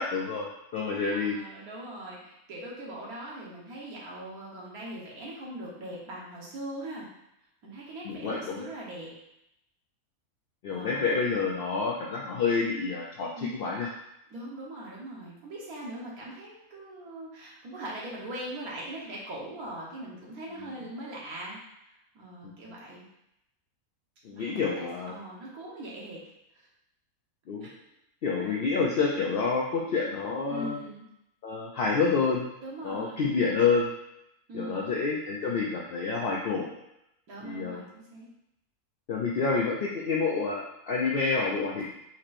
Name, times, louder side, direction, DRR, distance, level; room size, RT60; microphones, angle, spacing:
voice 1, 0.0-1.4 8.1-8.7 10.6-13.9 24.2-25.1 27.5-27.7 28.2-30.8 31.4-32.5 32.8-33.9 34.5-36.8 37.4-37.8 39.1-41.9, left 4 dB, 70° left, -2 dB, 0.5 m, -28 dB
voice 2, 1.1-7.0 7.6-9.1 10.7-11.1 13.4-13.7 14.3-21.6 22.1-23.0 24.3-26.2 26.5-26.7 27.6-27.8 28.4-28.9 30.5-31.0 32.6-33.3 34.5-35.0 37.3-38.3, right 1 dB, 80° right, -4 dB, 1.7 m, -41 dB
4.3 x 4.3 x 2.5 m, 0.82 s
omnidirectional pair, 1.5 m